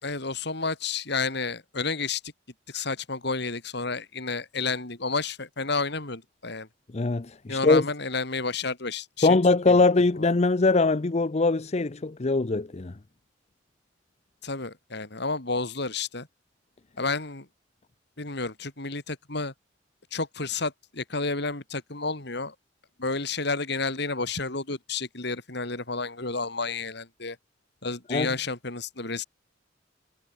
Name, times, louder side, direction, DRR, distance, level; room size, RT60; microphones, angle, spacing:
voice 1, 0.0-2.2 2.7-6.7 7.5-9.4 9.7-9.9 14.4-16.3 17.0-17.5 18.2-19.5 20.1-22.6 23.0-27.4 27.8-29.2, left 4 dB, 65° left, 3.6 m, -31 dB
voice 2, 6.9-7.8 9.2-12.9 28.1-28.3, left 3 dB, 35° left, 0.7 m, -22 dB
head